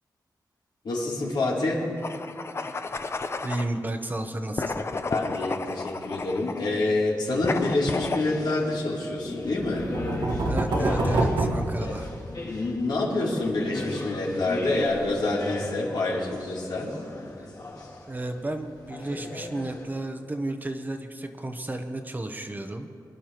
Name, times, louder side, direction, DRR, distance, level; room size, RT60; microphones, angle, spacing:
voice 1, 0.8-1.9 5.1-9.9 11.8-11.9 12.4-16.9, left 2 dB, 80° left, -4 dB, 3.1 m, -27 dB
sound 1, 2.0-3.7 4.6-6.7 7.4-8.3, left 3 dB, 35° left, 0.6 m, -32 dB
voice 2, 3.4-4.9 10.4-12.1 17.4-17.5 18.1-22.9, right 2 dB, 25° right, 6 dB, 0.8 m, -32 dB
sound 2, 7.4-19.9, left 2 dB, 55° left, 2.5 m, -37 dB
sound 3, 9.6-12.5, right 2 dB, 90° right, 1.6 m, -27 dB
25.0 x 11.5 x 3.0 m, 2.4 s
wide cardioid pair, 125°, 8 cm